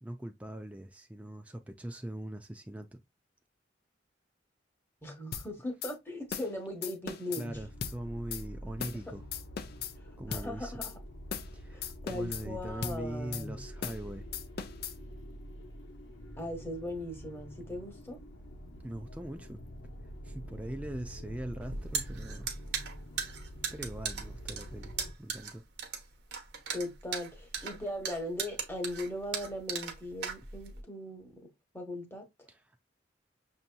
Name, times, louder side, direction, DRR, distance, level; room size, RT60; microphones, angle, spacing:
voice 1, 0.0-3.0 7.4-9.2 10.2-10.8 11.5-14.3 18.8-19.6 20.2-22.5 23.7-24.9 25.2-25.6 32.5-32.6, right 1 dB, 5° right, 0.4 m, -41 dB
voice 2, 5.0-7.6 10.3-10.9 11.7-13.6 16.4-18.2 26.7-31.5 31.7-32.2, left 1 dB, 10° left, 1.0 m, -39 dB
sound 1, 5.3-5.5 5.8-5.9 6.3-6.5 6.8-7.4 7.8-8.0 8.3-8.4 8.8-9.0 9.3-9.9 10.3-10.5 10.8-10.9 11.3-11.5 11.8-12.4 12.8-13.0 13.3-13.4 13.8-14.0 14.3-14.9, left 7 dB, 55° left, 0.5 m, -38 dB
sound 2, 7.5-25.1, equal, 85° left, 0.9 m, -46 dB
sound 3, 21.6-30.8, right 6 dB, 60° right, 0.9 m, -37 dB
6.3 x 2.7 x 2.2 m
head